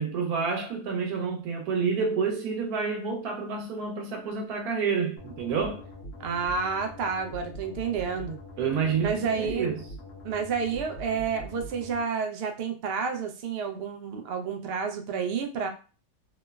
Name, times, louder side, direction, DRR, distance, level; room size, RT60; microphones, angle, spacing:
voice 1, 0.0-5.8 8.6-9.8, right 5 dB, 90° right, 1.2 m, -29 dB
sound 1, 5.2-12.0, equal, 55° left, 0.8 m, -43 dB
voice 2, 6.2-8.4 9.0-9.7 10.2-15.7, right 6 dB, 70° right, 0.6 m, -30 dB
3.0 x 2.0 x 2.2 m
omnidirectional pair, 1.5 m